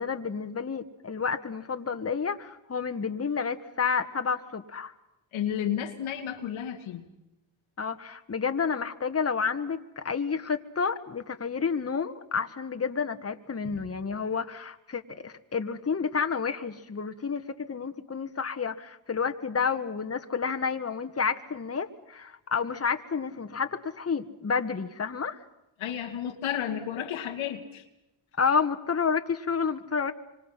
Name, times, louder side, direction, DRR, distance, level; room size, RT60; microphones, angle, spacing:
voice 1, 0.0-4.9 7.8-17.4 17.7-25.4 28.4-30.1, left 5 dB, 30° left, 8 dB, 1.6 m, -30 dB
voice 2, 5.3-7.0 13.6-13.9 25.8-27.8, left 9 dB, 85° left, 4 dB, 2.2 m, -32 dB
26.0 x 25.5 x 5.7 m, 0.92 s
supercardioid pair, 60°, 46 cm